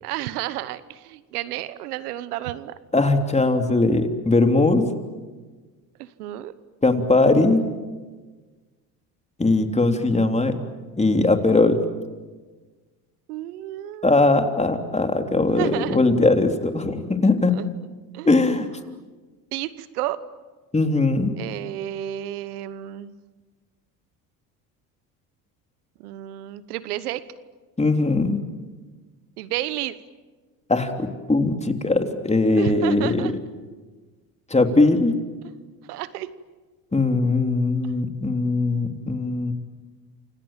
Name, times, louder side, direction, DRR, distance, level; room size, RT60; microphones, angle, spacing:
voice 1, 0.0-2.8 6.0-6.5 13.3-14.3 15.5-16.0 17.5-17.6 18.1-18.3 19.5-20.2 21.4-23.1 26.0-27.2 29.4-30.0 32.6-33.3 35.9-36.3, right 14 dB, 85° right, 16 dB, 1.2 m, -31 dB
voice 2, 2.9-4.9 6.8-7.7 9.4-10.6 11.0-11.8 14.0-17.5 18.2-18.7 20.7-21.3 27.8-28.4 30.7-33.3 34.5-35.2 36.9-39.5, left 2 dB, 15° left, 5 dB, 3.4 m, -20 dB
29.0 x 26.5 x 7.5 m, 1.3 s
hypercardioid pair, 75°, 44 cm